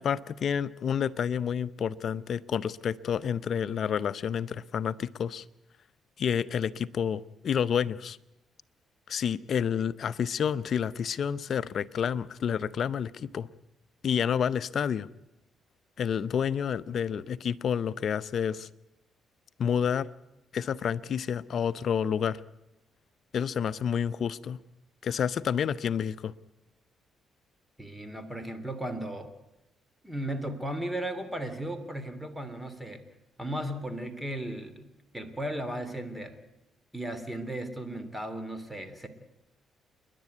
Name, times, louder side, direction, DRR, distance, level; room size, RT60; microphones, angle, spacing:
voice 1, 0.0-5.4 6.2-8.2 9.1-13.5 14.0-15.1 16.0-18.7 19.6-20.1 20.5-22.4 23.3-24.6 25.0-26.3, left 8 dB, 60° left, 16 dB, 0.6 m, -29 dB
voice 2, 27.8-29.3 30.0-33.0 33.4-34.9 35.1-36.4 36.9-39.1, right 1 dB, 5° right, 10 dB, 2.7 m, -35 dB
28.5 x 11.0 x 9.4 m, 0.93 s
cardioid pair, 90°, 0 cm